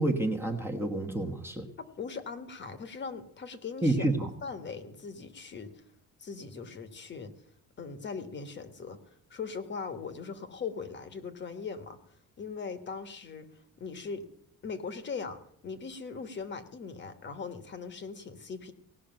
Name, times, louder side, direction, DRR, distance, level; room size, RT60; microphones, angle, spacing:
voice 1, 0.0-1.7 3.8-4.3, right 2 dB, 5° right, 1 dB, 1.2 m, -29 dB
voice 2, 1.8-4.1 4.4-5.8 6.2-7.3 7.8-9.0 9.3-14.3 14.6-18.7, left 5 dB, 35° left, 9 dB, 1.4 m, -40 dB
18.0 x 6.5 x 8.9 m, 0.69 s
cardioid pair, 165°, 33 cm